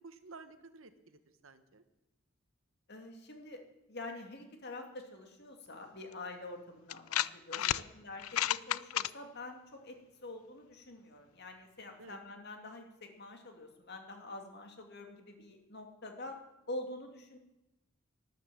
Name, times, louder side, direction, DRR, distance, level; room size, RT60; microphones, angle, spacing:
voice 1, 0.0-1.8 7.5-7.9 12.0-12.2, right 3 dB, 70° right, 10 dB, 1.2 m, -53 dB
voice 2, 2.9-3.6 3.9-16.4 16.7-17.4, left 2 dB, 55° left, 4 dB, 2.4 m, -46 dB
sound 1, 6.1-6.2 6.9-7.8 8.2-9.1, left 12 dB, 90° left, 0.4 m, -32 dB
12.5 x 11.5 x 7.6 m, 0.95 s
head